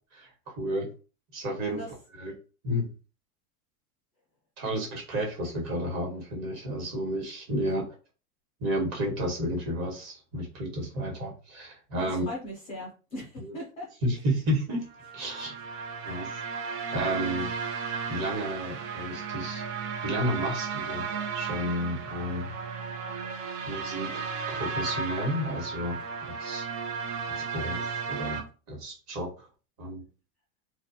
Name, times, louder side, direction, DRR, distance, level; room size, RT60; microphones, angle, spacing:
voice 1, 0.1-0.9 1.3-1.8 2.1-2.3 2.6-2.9 4.6-7.9 8.6-12.3 13.4-13.5 14.0-14.8 15.1-16.4 16.9-17.5 18.1-21.0 21.3-22.5 23.7-26.0 26.4-26.6 27.3-28.4 28.7-29.5 29.8-30.0, equal, 35° right, -1 dB, 1.1 m, -32 dB
voice 2, 12.0-13.9 16.0-16.2, left 1 dB, 15° left, -4 dB, 0.3 m, -39 dB
sound 1, 14.9-28.4, right 5 dB, 85° right, 0.7 m, -34 dB
2.3 x 2.2 x 2.6 m, 0.35 s
supercardioid pair, 135°, 46 cm